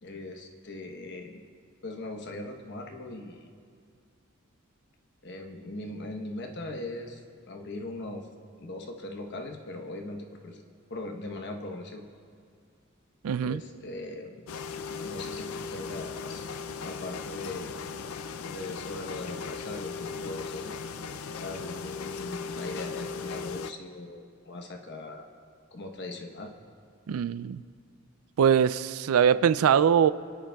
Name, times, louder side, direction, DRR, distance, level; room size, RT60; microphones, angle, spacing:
voice 1, 0.0-1.4 1.8-3.5 5.2-7.2 7.5-8.3 8.6-10.6 10.9-12.0 13.4-14.4 15.0-16.5 16.8-17.8 18.4-20.7 21.4-25.3 25.7-26.5, left 2 dB, 55° left, 3 dB, 1.0 m, -39 dB
voice 2, 13.2-13.6 27.1-27.6 28.4-30.1, right 8 dB, 85° right, 16 dB, 0.4 m, -22 dB
sound 1, 14.5-23.7, left 5 dB, 80° left, 0.5 m, -37 dB
28.0 x 10.5 x 2.3 m, 2.2 s
head